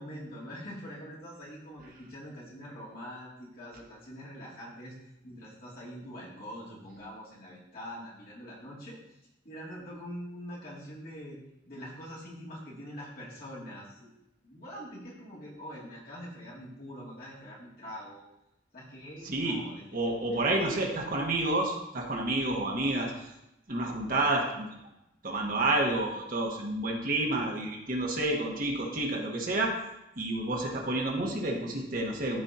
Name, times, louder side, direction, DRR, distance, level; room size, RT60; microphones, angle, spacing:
voice 1, 0.0-4.9 5.2-9.0 9.4-11.4 11.7-14.1 14.4-18.3 18.7-20.7, equal, 55° left, -6 dB, 2.6 m, -44 dB
voice 2, 19.2-19.6 19.9-23.3 23.7-24.7 25.2-29.7 30.2-32.4, right 2 dB, 50° right, 0 dB, 1.4 m, -29 dB
13.0 x 4.5 x 2.9 m, 0.87 s
head